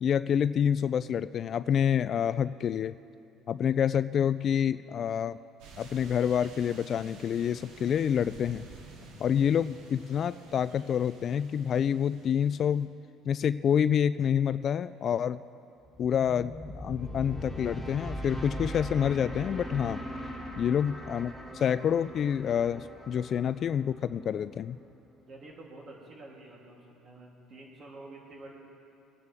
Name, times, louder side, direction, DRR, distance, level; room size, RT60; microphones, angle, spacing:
voice 1, 0.0-3.0 3.5-5.4 5.8-8.7 9.2-12.9 13.3-15.4 16.0-20.0 20.6-24.8, left 8 dB, 45° left, 14 dB, 0.3 m, -27 dB
sound 1, 5.6-12.8, right 3 dB, 80° right, 2.2 m, -51 dB
sound 2, 15.8-25.0, equal, 10° right, 3.9 m, -40 dB
voice 2, 25.2-28.5, right 2 dB, 45° right, -2 dB, 3.1 m, -49 dB
23.0 x 9.6 x 3.5 m, 2.7 s
cardioid pair, 110°, 0 cm